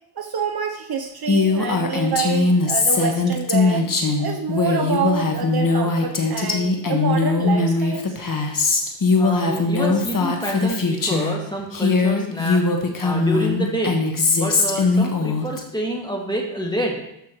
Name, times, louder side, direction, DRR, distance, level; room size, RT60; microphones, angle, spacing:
voice 1, 0.2-3.9 4.2-8.2, right 6 dB, 50° right, 5 dB, 0.8 m, -27 dB
Female speech woman speaking, 1.3-11.4 11.7-15.6, left 3 dB, 40° left, 1.5 m, -20 dB
voice 2, 9.2-12.6 13.0-13.9 14.4-16.9, right 1 dB, 10° left, 0 dB, 2.1 m, -27 dB
13.0 x 5.8 x 3.1 m, 0.82 s
cardioid pair, 65°, 49 cm